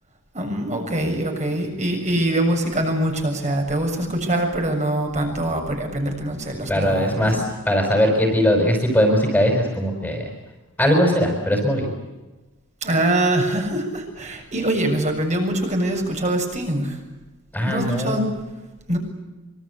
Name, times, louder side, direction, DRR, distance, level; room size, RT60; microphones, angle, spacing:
voice 1, 0.3-7.6 12.8-17.0 17.6-18.3 18.9-19.0, right 1 dB, 35° right, 3 dB, 7.0 m, -23 dB
voice 2, 6.7-10.2 10.8-11.9 17.5-18.2, equal, 5° left, 2 dB, 5.3 m, -20 dB
26.0 x 24.5 x 8.2 m, 1.1 s
head